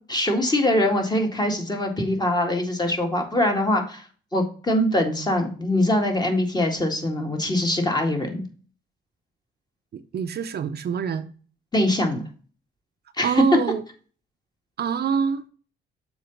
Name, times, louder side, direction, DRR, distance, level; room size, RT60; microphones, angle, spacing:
voice 1, 0.1-4.1 4.3-8.4 11.7-12.2 13.2-13.4, left 1 dB, 20° left, 2.2 m, -23 dB
voice 2, 9.9-11.2 13.2-13.8 14.8-15.4, right 7 dB, 55° right, 0.7 m, -25 dB
7.0 x 4.0 x 5.8 m
cardioid pair, 90°, 20 cm